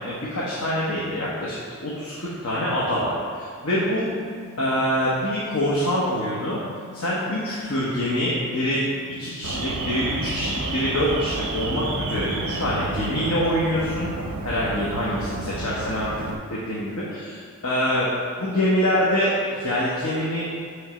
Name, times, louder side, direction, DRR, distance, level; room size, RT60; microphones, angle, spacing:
voice 1, 0.0-4.1 4.6-6.6 6.9-8.8 9.2-14.1 14.4-16.1 16.5-18.1 18.4-19.3 19.6-20.4, equal, 85° left, -7 dB, 1.1 m, -25 dB
sound 1, 4.2-15.6, left 10 dB, 30° left, 0.6 m, -47 dB
Alarm, 9.4-16.3, right 2 dB, 75° right, 0.7 m, -31 dB
8.0 x 3.3 x 5.0 m, 2.2 s
head